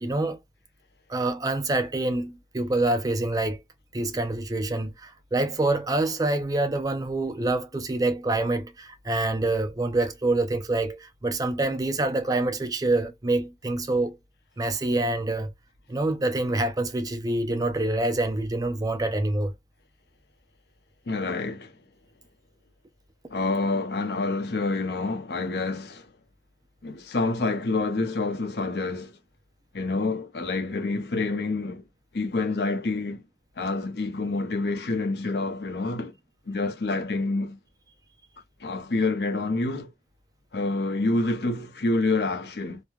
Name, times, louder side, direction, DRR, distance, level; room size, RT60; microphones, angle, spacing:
voice 1, 0.0-0.4 1.1-3.6 3.9-14.2 14.6-15.5 15.9-19.5, right 2 dB, 20° right, 0.4 m, -26 dB
voice 2, 21.1-21.7 23.3-26.1 26.8-29.1 29.7-31.8 32.1-33.3 33.6-36.1 36.5-37.6 38.6-39.9 40.5-42.8, left 3 dB, 65° left, 0.6 m, -27 dB
3.1 x 2.2 x 2.3 m
head